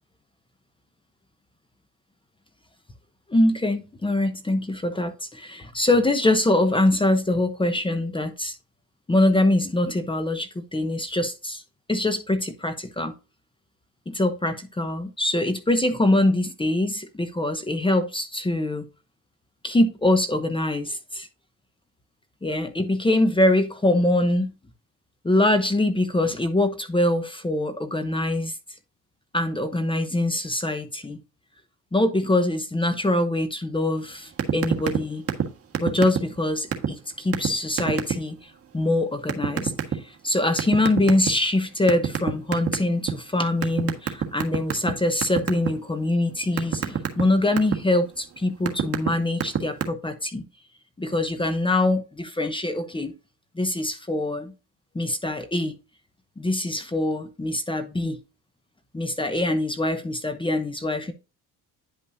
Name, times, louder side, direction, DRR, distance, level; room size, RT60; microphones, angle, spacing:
voice 1, 3.3-8.6 9.1-11.6 11.9-13.1 14.1-18.9 19.6-21.3 22.4-24.5 25.2-28.6 29.3-31.2 31.9-35.3 35.8-39.7 40.0-50.4 51.0-53.1 53.5-54.5 54.9-55.8 56.4-58.2 58.9-61.1, left 1 dB, 15° left, 0.9 m, -24 dB
sound 1, 34.4-35.0 35.3-35.5 35.7-36.4 36.7-36.9 37.3-37.5 37.8-38.1 39.3-39.9 40.6-41.5 41.9-43.1 43.6-44.9 45.2-45.7 46.1-47.8 48.4-49.1 49.4-49.8, right 8 dB, 35° right, 1.5 m, -23 dB
10.0 x 5.4 x 2.7 m
supercardioid pair, 90°, 39 cm